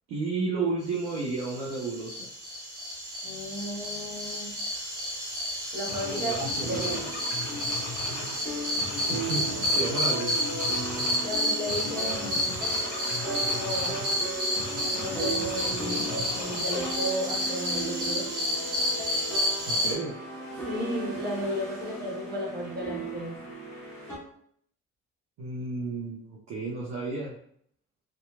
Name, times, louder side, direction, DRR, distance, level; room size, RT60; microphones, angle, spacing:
voice 1, 0.1-2.3 6.2-7.0 9.1-10.3 19.7-20.1 25.4-27.3, right 3 dB, 50° right, -4 dB, 0.6 m, -32 dB
sound 1, 1.0-19.9, equal, 75° right, 0.9 m, -31 dB
voice 2, 3.2-4.6 5.7-6.9 11.2-12.5 13.5-14.0 14.9-18.3 20.5-23.4, equal, 25° right, -4 dB, 1.3 m, -34 dB
sound 2, 5.3-5.5 5.9-8.4 8.8-11.3 11.7-14.2 14.6-16.9, left 3 dB, 65° left, 0.7 m, -39 dB
sound 3, 6.6-24.2, right 2 dB, 5° left, 1.4 m, -37 dB
2.7 x 2.2 x 2.3 m, 0.66 s
figure-of-eight pair, 45°, 35 cm